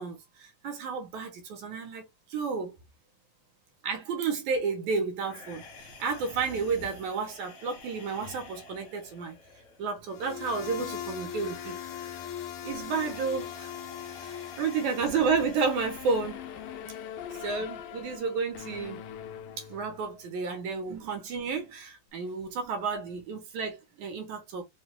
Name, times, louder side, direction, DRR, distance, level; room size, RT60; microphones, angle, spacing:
voice 1, 0.0-2.0 2.3-2.7 3.8-5.6 6.0-9.4 9.8-11.8 12.6-13.7 14.2-16.4 17.4-19.0 19.6-24.6, right 5 dB, 70° right, 2.4 m, -31 dB
sound 1, 5.2-18.2, left 4 dB, 55° left, 2.3 m, -50 dB
sound 2, 10.1-15.9, left 10 dB, 75° left, 2.4 m, -40 dB
sound 3, 15.7-20.3, left 9 dB, 90° left, 2.2 m, -42 dB
6.0 x 2.7 x 2.2 m
omnidirectional pair, 3.7 m